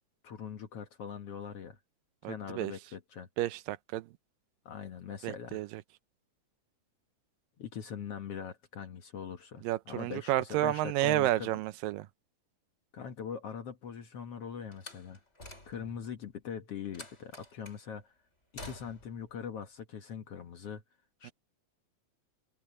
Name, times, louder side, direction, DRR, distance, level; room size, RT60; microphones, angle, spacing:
voice 1, 0.2-1.8 2.2-3.3 4.7-5.6 7.6-11.5 12.9-15.2 15.7-18.1 18.6-20.8 21.2-21.3, left 7 dB, 55° left, 1.9 m, -42 dB
voice 2, 2.2-2.7 3.4-4.1 5.2-5.8 9.6-12.1 21.2-21.3, right 15 dB, 80° right, 2.4 m, -31 dB
Slam, 14.7-16.1 16.9-17.8 18.6-19.2, left 2 dB, 20° left, 5.8 m, -48 dB
open air
omnidirectional pair, 4.0 m